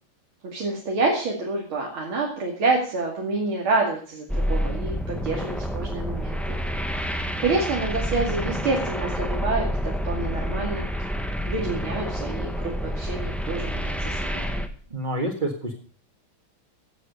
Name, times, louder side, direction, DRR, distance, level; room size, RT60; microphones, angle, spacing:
voice 1, 0.5-6.4 7.4-10.8 11.5-14.6, right 3 dB, 85° right, -2 dB, 3.3 m, -27 dB
sound 1, 4.3-14.7, equal, ahead, 0.8 m, -28 dB
voice 2, 14.9-15.8, right 1 dB, 25° right, -1 dB, 2.0 m, -28 dB
15.5 x 7.6 x 6.6 m, 0.43 s
omnidirectional pair, 2.2 m